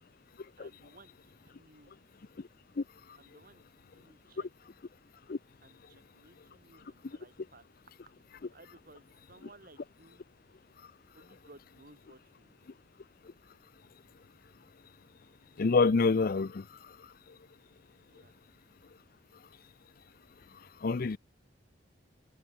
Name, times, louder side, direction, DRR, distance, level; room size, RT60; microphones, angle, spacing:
voice 1, 0.6-1.9 3.1-3.6 3.9-4.5 5.6-7.6 8.1-8.2 8.5-10.2 11.1-12.7 18.1-18.4, right 2 dB, 50° right, 6.0 m, -59 dB
voice 2, 15.6-16.6 20.8-21.2, left 4 dB, 50° left, 0.5 m, -26 dB
head